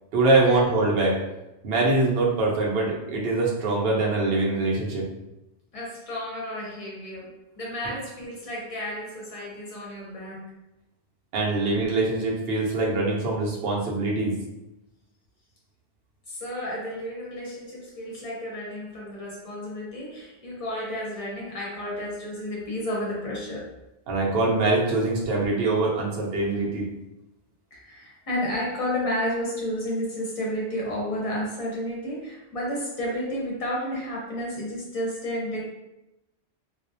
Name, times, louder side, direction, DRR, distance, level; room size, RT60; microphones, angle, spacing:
voice 1, 0.1-1.2 1.6-5.1 11.3-14.4 24.1-26.9, right 2 dB, 65° right, -3 dB, 0.7 m, -23 dB
voice 2, 5.7-10.4 16.3-23.7 27.7-35.6, left 1 dB, 40° left, -4 dB, 0.6 m, -32 dB
2.3 x 2.0 x 2.6 m, 0.94 s
omnidirectional pair, 1.2 m